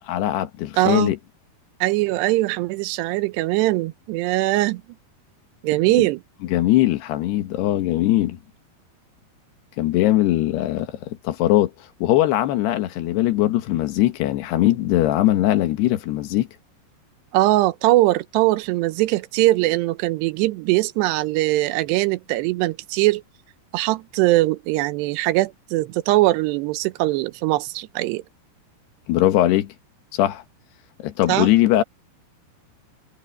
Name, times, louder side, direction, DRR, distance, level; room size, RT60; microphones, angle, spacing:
voice 1, 0.1-1.2 6.5-8.4 9.8-11.7 12.0-16.5 29.1-29.7 30.1-30.4 31.0-31.8, left 14 dB, 80° left, 3.3 m, -20 dB
voice 2, 0.8-1.1 1.8-4.8 5.6-6.2 17.3-23.2 23.7-28.2 31.3-31.5, right 18 dB, 90° right, 2.9 m, -21 dB
omnidirectional pair, 4.8 m